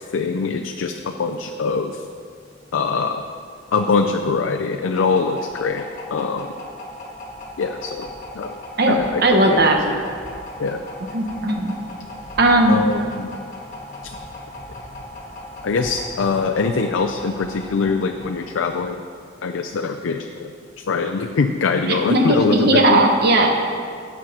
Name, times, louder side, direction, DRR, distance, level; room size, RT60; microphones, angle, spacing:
voice 1, 0.1-2.0 2.7-3.2 3.7-6.5 7.6-8.6 8.9-9.6 9.9-10.0 10.6-10.8 12.7-13.3 14.0-14.1 15.6-19.0 19.4-20.5 20.8-23.0, left 4 dB, 85° left, 4 dB, 0.5 m, -23 dB
sound 1, 3.2-19.0, left 1 dB, 40° left, 1.8 m, -38 dB
voice 2, 9.2-9.8 11.1-11.7 12.4-12.8 21.9-23.5, right 2 dB, 55° right, 2 dB, 1.1 m, -16 dB
8.9 x 7.3 x 5.5 m, 2.2 s
head